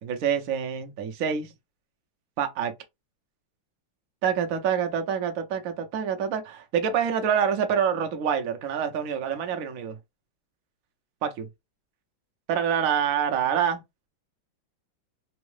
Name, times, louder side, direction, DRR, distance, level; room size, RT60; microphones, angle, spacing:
voice 1, 0.0-1.5 2.4-2.7 4.2-10.0 11.2-11.5 12.5-13.8, right 8 dB, 60° right, 0.9 m, -26 dB
4.5 x 2.1 x 3.1 m
omnidirectional pair, 2.2 m